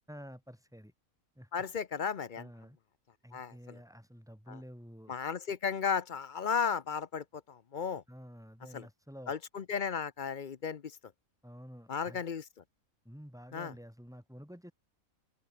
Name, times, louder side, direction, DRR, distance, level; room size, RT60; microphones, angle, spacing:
voice 1, 0.1-0.9 1.4-1.6 2.4-2.8 3.2-5.2 8.1-9.3 11.4-12.2 13.0-14.7, equal, ahead, 4.7 m, -50 dB
voice 2, 1.5-2.5 3.3-3.8 4.5-4.6 5.1-8.0 8.7-8.9 9.3-10.8 11.9-12.4 13.5-13.7, left 6 dB, 45° left, 0.7 m, -34 dB
open air
omnidirectional pair, 1.5 m